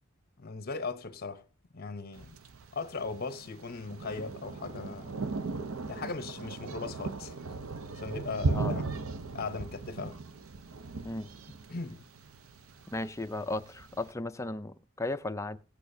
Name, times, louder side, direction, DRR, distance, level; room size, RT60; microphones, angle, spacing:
voice 1, 0.4-1.4 1.7-2.4 2.7-5.2 5.9-7.4 8.0-8.9 9.3-10.2 11.7-12.0, left 4 dB, 45° left, 0.9 m, -38 dB
Thunder, 2.1-14.1, right 3 dB, 80° right, 0.7 m, -37 dB
voice 2, 12.9-15.6, left 2 dB, 15° left, 0.4 m, -35 dB
17.0 x 8.4 x 2.7 m
head